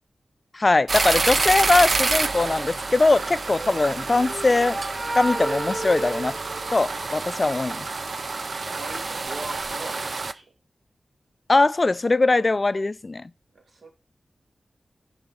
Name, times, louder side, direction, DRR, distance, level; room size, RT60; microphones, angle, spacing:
voice 1, 0.5-4.8 5.1-6.4 6.7-7.9 11.5-13.3, left 3 dB, 35° left, 0.4 m, -21 dB
sound 1, 0.9-10.3, right 3 dB, 55° right, 0.6 m, -28 dB
sound 2, 3.5-7.4, right 2 dB, 35° right, 1.8 m, -32 dB
voice 2, 8.3-10.5 13.5-13.9, right 2 dB, 75° right, 2.4 m, -40 dB
10.5 x 4.3 x 5.0 m
wide cardioid pair, 110°, 0 cm